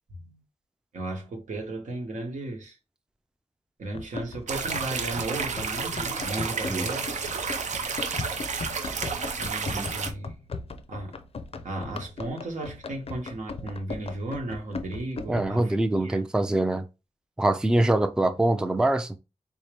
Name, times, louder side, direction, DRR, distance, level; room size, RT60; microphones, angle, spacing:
voice 1, 0.9-2.8 3.8-7.1 9.4-10.3 10.9-11.2 11.6-16.2, right 2 dB, 90° right, 1.1 m, -35 dB
Run, 3.9-15.6, left 4 dB, 50° left, 0.5 m, -38 dB
sound 1, 4.5-10.1, right 5 dB, 75° right, 0.6 m, -31 dB
voice 2, 15.3-16.8 17.4-19.2, right 1 dB, 5° right, 0.3 m, -24 dB
3.5 x 2.8 x 3.3 m
wide cardioid pair, 75°, 13 cm